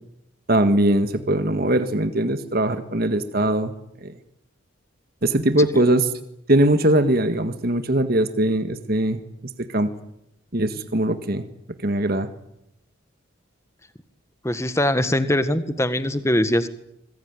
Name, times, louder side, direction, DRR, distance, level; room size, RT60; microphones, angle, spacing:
voice 1, 0.5-3.7 4.0-4.1 5.2-6.1 6.5-9.2 9.6-9.9 10.5-11.4 11.8-12.3, right 1 dB, 50° right, 9 dB, 1.7 m, -21 dB
voice 2, 14.4-16.7, left 1 dB, 15° left, 11 dB, 1.6 m, -22 dB
25.5 x 21.5 x 9.7 m, 0.80 s
head